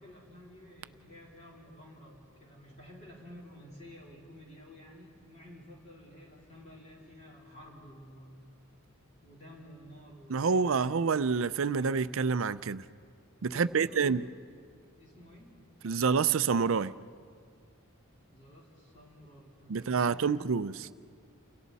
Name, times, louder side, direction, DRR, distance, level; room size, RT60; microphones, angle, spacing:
voice 1, 0.0-8.4 9.2-11.0 13.5-14.1 15.0-15.6 18.3-20.4, left 1 dB, 30° left, 3.9 m, -52 dB
voice 2, 10.3-12.8 13.4-14.2 15.8-16.9 19.7-20.7, right 5 dB, 65° right, 0.5 m, -27 dB
30.0 x 28.5 x 4.1 m
head